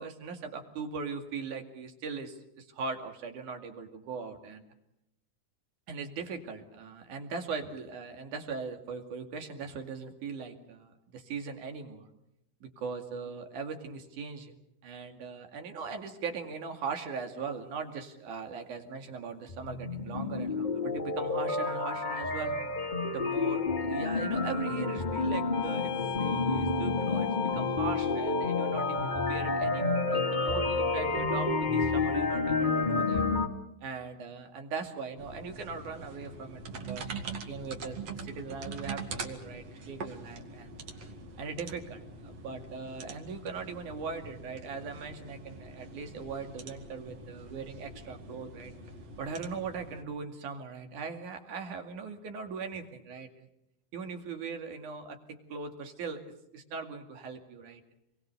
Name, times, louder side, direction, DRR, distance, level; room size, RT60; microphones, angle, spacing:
voice 1, 0.0-4.7 5.9-12.1 12.6-14.5 14.8-22.5 23.1-25.9 26.2-33.3 33.8-40.7 41.4-48.7 49.2-53.5 53.9-55.2 55.5-56.2 56.5-57.8, right 5 dB, 75° right, 5 dB, 3.8 m, -40 dB
sound 1, 19.5-33.5, left 3 dB, 20° left, 1.5 m, -29 dB
sound 2, 25.5-29.7, left 16 dB, 70° left, 2.3 m, -40 dB
sound 3, 35.2-50.0, right 3 dB, 55° right, 3.1 m, -44 dB
27.5 x 22.0 x 6.8 m, 0.83 s
omnidirectional pair, 3.5 m